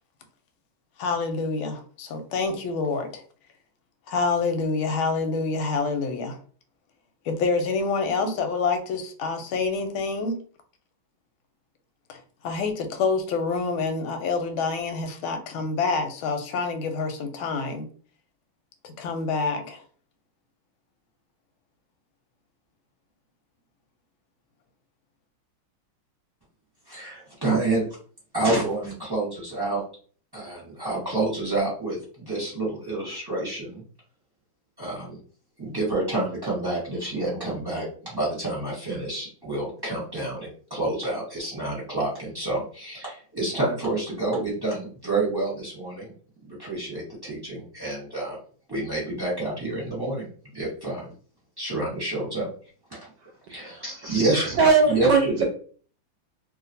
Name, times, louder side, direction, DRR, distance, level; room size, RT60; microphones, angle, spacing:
voice 1, 1.0-3.2 4.1-6.4 7.2-10.4 12.1-17.9 18.8-19.8, left 4 dB, 90° left, 1.4 m, -27 dB
voice 2, 26.9-27.8 28.3-29.8 30.3-33.8 34.8-35.2 35.6-46.1 46.5-48.4 48.7-50.3 50.5-51.1 51.6-52.5 52.9-53.1 53.5-54.6 54.9-55.4, right 2 dB, 15° right, 1.0 m, -28 dB
voice 3, 53.8-54.1 54.5-55.4, right 4 dB, 75° right, 1.0 m, -21 dB
3.0 x 2.8 x 2.6 m
omnidirectional pair, 2.2 m